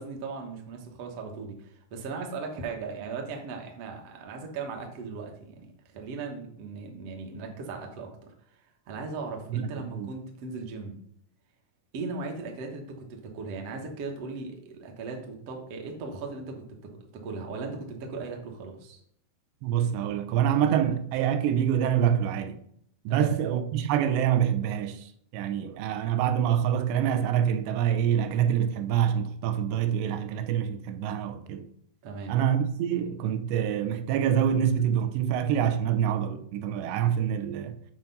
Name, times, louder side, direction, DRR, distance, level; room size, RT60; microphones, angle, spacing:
voice 1, 0.0-8.3 8.9-11.0 11.9-19.0 23.1-23.3 32.0-32.4, right 4 dB, 70° right, 1.5 m, -38 dB
voice 2, 9.5-10.1 19.6-22.6 23.1-31.7 32.3-37.8, right 9 dB, 85° right, 2.8 m, -26 dB
8.2 x 4.4 x 5.5 m
omnidirectional pair, 4.8 m